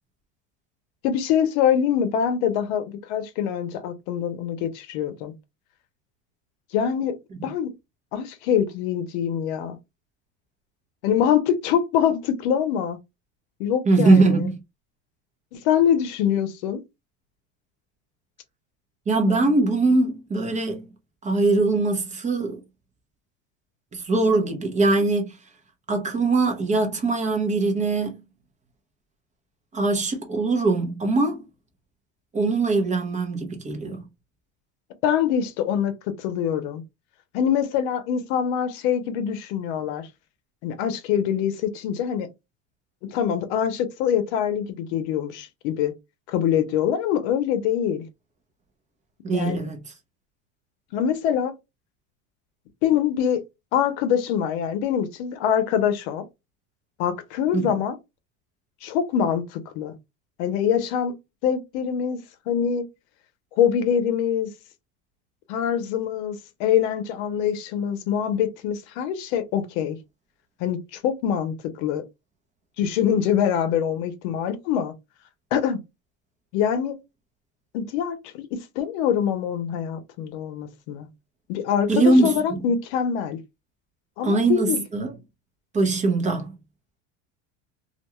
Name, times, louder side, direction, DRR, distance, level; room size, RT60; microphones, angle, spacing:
voice 1, 1.0-5.3 6.7-7.2 7.4-7.7 8.1-9.8 11.0-13.0 13.6-14.5 15.5-16.8 35.0-36.8 37.3-40.1 40.6-42.3 43.0-45.9 46.3-48.1 49.3-49.6 50.9-51.5 52.8-53.4 53.7-56.2 57.0-58.0 58.8-59.9 60.4-61.1 61.4-62.2 62.5-62.9 63.6-64.5 65.5-70.0 70.6-72.0 72.8-74.9 75.5-75.8 76.5-77.0 77.7-81.1 81.5-83.4 84.2-84.8, left 8 dB, 70° left, 0.7 m, -24 dB
voice 2, 13.9-14.5 19.1-20.8 21.2-22.6 23.9-25.2 25.9-28.1 29.7-31.4 32.3-34.0 49.2-49.8 57.5-57.6 81.9-82.6 84.2-85.1 85.7-86.5, right 3 dB, 20° right, 0.7 m, -21 dB
2.5 x 2.2 x 2.9 m
supercardioid pair, 130°, 35 cm